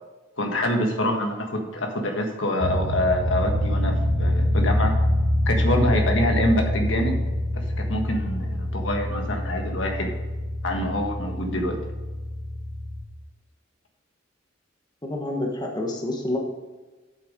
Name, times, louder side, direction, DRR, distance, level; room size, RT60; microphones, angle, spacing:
voice 1, 0.4-3.9 4.2-5.0 5.5-7.2 7.5-7.6 7.9-10.1 10.6-11.8, left 1 dB, 75° left, 2 dB, 1.6 m, -25 dB
sound 1, 2.6-13.0, left 1 dB, 40° right, 1.5 m, -25 dB
voice 2, 15.0-16.4, left 1 dB, 20° left, 0 dB, 1.3 m, -28 dB
8.2 x 6.7 x 5.2 m, 1.2 s
head